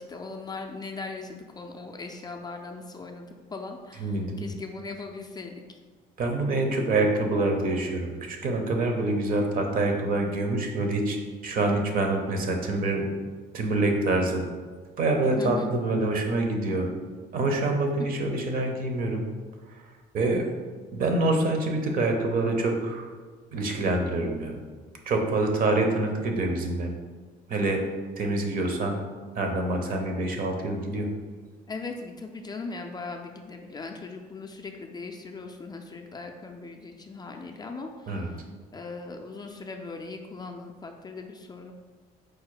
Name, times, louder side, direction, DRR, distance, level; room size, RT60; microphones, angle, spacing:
voice 1, 0.0-5.6 15.2-15.7 18.0-18.1 31.7-38.3 38.7-41.7, left 3 dB, 25° left, 3 dB, 0.4 m, -39 dB
voice 2, 4.0-4.5 6.2-11.2 11.4-13.1 13.5-14.4 15.0-16.9 17.3-19.3 20.1-20.5 20.9-23.1 23.5-24.6 25.1-26.9 27.5-27.8 28.2-29.0 29.4-31.1 38.1-38.3, right 2 dB, 55° right, 3 dB, 0.8 m, -26 dB
4.7 x 2.1 x 4.7 m, 1.4 s
cardioid pair, 110°, 17 cm